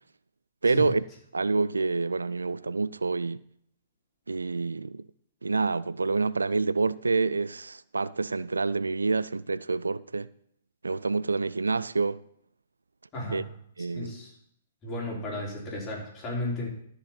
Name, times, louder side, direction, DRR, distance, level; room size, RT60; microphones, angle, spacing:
voice 1, 0.6-1.1 1.3-3.4 4.3-5.1 5.4-10.3 10.8-12.2 13.3-13.4 13.8-14.1, right 3 dB, 80° right, 0.3 m, -27 dB
voice 2, 13.1-13.5 13.9-14.3 14.8-16.7, left 1 dB, 25° left, 3.9 m, -34 dB
13.0 x 5.0 x 5.7 m
figure-of-eight pair, 115°, 0 cm